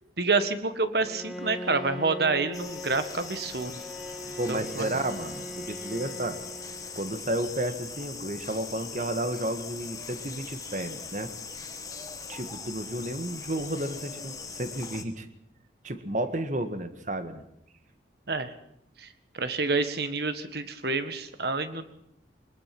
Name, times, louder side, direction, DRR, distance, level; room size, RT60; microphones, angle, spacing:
voice 1, 0.2-3.8 4.5-4.9 18.3-18.5 19.0-19.1 19.4-21.9, right 3 dB, 60° right, 10 dB, 1.7 m, -28 dB
Bowed string instrument, 1.0-7.3, equal, ahead, 2.6 m, -41 dB
sound 1, 2.5-15.0, left 5 dB, 20° left, 1.6 m, -41 dB
voice 2, 4.4-6.4 6.9-11.3 12.3-15.3 15.8-17.4, right 1 dB, 40° right, 9 dB, 1.7 m, -32 dB
22.5 x 20.5 x 6.1 m, 0.78 s
head